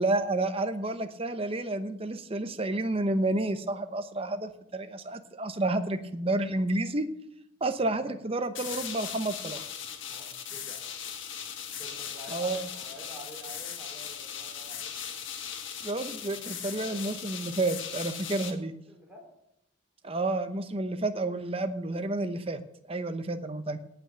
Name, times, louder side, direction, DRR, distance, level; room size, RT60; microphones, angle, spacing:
voice 1, 0.0-7.1 7.6-9.6 12.3-12.7 15.8-18.7 20.0-22.6 22.9-23.8, right 2 dB, 30° right, 9 dB, 0.8 m, -30 dB
voice 2, 7.8-8.2 10.1-10.9 11.8-15.3 15.8-16.0 16.3-17.3 18.9-19.3, equal, 5° right, -2 dB, 3.9 m, -49 dB
sound 1, 8.5-18.5, left 8 dB, 75° left, 1.7 m, -39 dB
17.5 x 6.0 x 6.8 m, 0.79 s
head